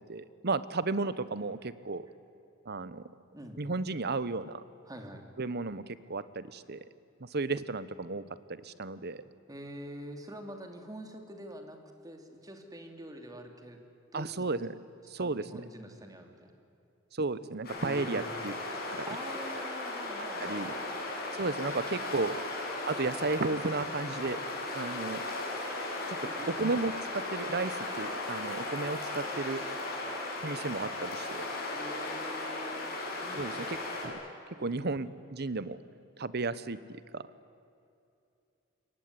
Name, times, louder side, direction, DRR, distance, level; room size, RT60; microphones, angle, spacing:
voice 1, 0.1-2.1 2.6-3.0 3.6-4.6 5.4-6.8 7.2-8.2 8.5-9.2 14.1-14.8 15.1-15.6 17.1-18.5 18.9-19.1 20.4-20.7 21.3-22.4 22.9-24.4 24.7-25.2 26.1-26.2 26.5-29.6 30.4-31.5 33.3-33.8 34.0-34.2 34.6-35.8 36.2-37.3, right 3 dB, 55° right, 15 dB, 1.1 m, -33 dB
voice 2, 4.9-5.3 9.5-13.8 14.1-14.5 15.2-16.5 17.8-18.4 19.1-20.8 26.1-26.4 31.7-33.7 34.5-34.9, equal, 20° right, 4 dB, 3.0 m, -46 dB
sound 1, 17.6-34.1, left 2 dB, 50° left, 7.5 m, -36 dB
27.0 x 22.5 x 9.8 m, 2.6 s
head